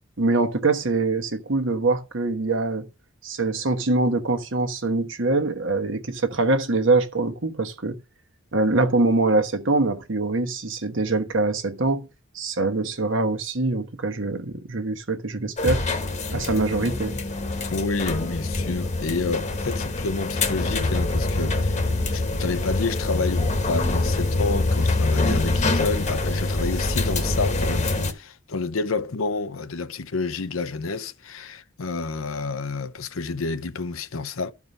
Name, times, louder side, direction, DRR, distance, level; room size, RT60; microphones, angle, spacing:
voice 1, 0.2-2.9 3.2-8.0 8.5-12.1 12.3-15.8 16.3-17.2, right 3 dB, 65° right, 1.2 m, -23 dB
sound 1, 15.6-28.1, left 2 dB, 35° left, 1.2 m, -25 dB
voice 2, 17.7-34.5, left 3 dB, 90° left, 0.8 m, -29 dB
12.5 x 4.8 x 5.4 m
head